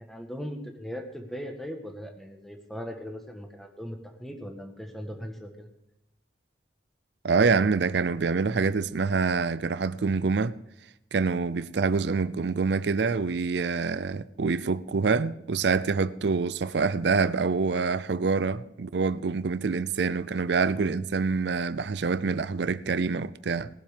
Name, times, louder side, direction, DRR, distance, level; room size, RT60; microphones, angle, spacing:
voice 1, 0.0-5.7, equal, ahead, 1.5 m, -39 dB
voice 2, 7.2-10.6 11.1-23.7, right 4 dB, 70° right, 0.5 m, -26 dB
19.0 x 7.4 x 5.1 m
head